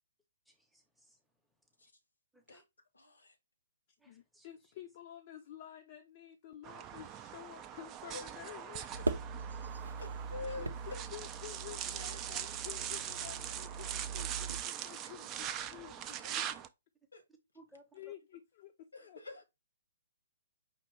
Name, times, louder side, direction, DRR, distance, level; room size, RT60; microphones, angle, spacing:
voice 1, 0.5-1.2 2.3-2.6 4.0-4.5 16.3-16.6 17.5-18.1, right 2 dB, ahead, 0.8 m, -61 dB
voice 2, 2.9-3.4 8.1-8.6 10.0-10.7 12.0-12.6 15.0-15.1 15.5-16.3 17.1-17.2 18.9-19.4, left 4 dB, 75° left, 1.0 m, -48 dB
voice 3, 4.0-9.1 10.5-16.4 17.9-19.2, left 12 dB, 40° left, 0.5 m, -51 dB
sound 1, 6.6-16.7, right 10 dB, 20° right, 0.4 m, -42 dB
sound 2, 8.9-14.6, right 4 dB, 75° right, 0.6 m, -41 dB
5.2 x 2.9 x 3.1 m
figure-of-eight pair, 125°, 0 cm